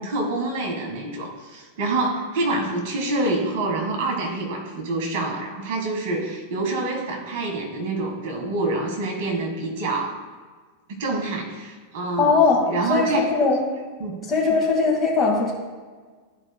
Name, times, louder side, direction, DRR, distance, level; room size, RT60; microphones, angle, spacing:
voice 1, 0.0-10.2 10.9-12.4 12.7-13.3 14.0-14.2, right 2 dB, 50° right, 0 dB, 1.6 m, -26 dB
voice 2, 12.2-13.6 14.3-15.5, left 4 dB, 20° left, -3 dB, 2.0 m, -20 dB
13.0 x 4.8 x 2.3 m, 1.4 s
figure-of-eight pair, 90°, 0 cm